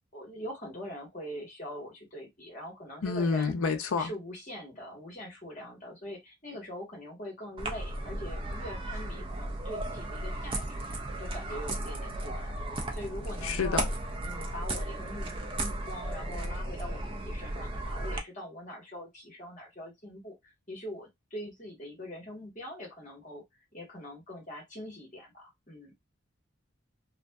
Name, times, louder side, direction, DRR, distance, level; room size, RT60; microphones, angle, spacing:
voice 1, 0.1-3.5 4.0-13.9 14.2-23.4 23.7-25.9, equal, 35° left, 1.2 m, -43 dB
voice 2, 3.0-4.1 13.4-13.9, left 4 dB, 80° left, 0.5 m, -29 dB
sound 1, 7.6-18.2, right 1 dB, 25° right, 0.3 m, -35 dB
2.5 x 2.5 x 2.2 m
head